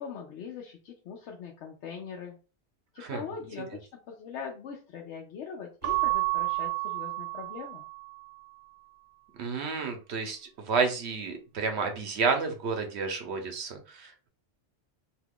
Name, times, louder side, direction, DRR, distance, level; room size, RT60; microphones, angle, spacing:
voice 1, 0.0-2.4 2.9-7.8, left 6 dB, 85° left, 0 dB, 0.9 m, -41 dB
Keyboard (musical) / Bell, 5.8-8.3, right 24 dB, 60° right, 0.6 m, -30 dB
voice 2, 9.4-14.3, right 5 dB, 75° right, 5 dB, 1.0 m, -30 dB
2.8 x 2.3 x 3.5 m, 0.35 s
omnidirectional pair, 1.1 m